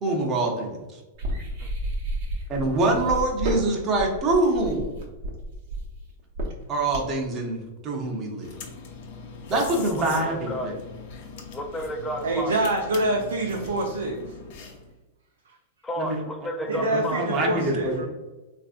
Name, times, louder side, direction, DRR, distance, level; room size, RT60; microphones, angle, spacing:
voice 1, 0.0-0.8 2.5-4.9 6.7-8.5 9.5-10.7 16.0-16.2 16.7-18.0, right 2 dB, 30° right, 1 dB, 0.8 m, -25 dB
sound 1, 1.1-7.2, right 1 dB, 60° right, 0.9 m, -31 dB
sound 2, 8.4-14.9, left 5 dB, 60° left, 0.6 m, -41 dB
voice 2, 9.9-10.7 11.5-12.5 15.8-17.2, equal, 10° left, 2 dB, 0.4 m, -32 dB
voice 3, 12.2-14.2 16.7-18.1, right 2 dB, 85° right, 0 dB, 0.4 m, -26 dB
3.3 x 2.5 x 2.4 m, 1.1 s
hypercardioid pair, 125°, 0 cm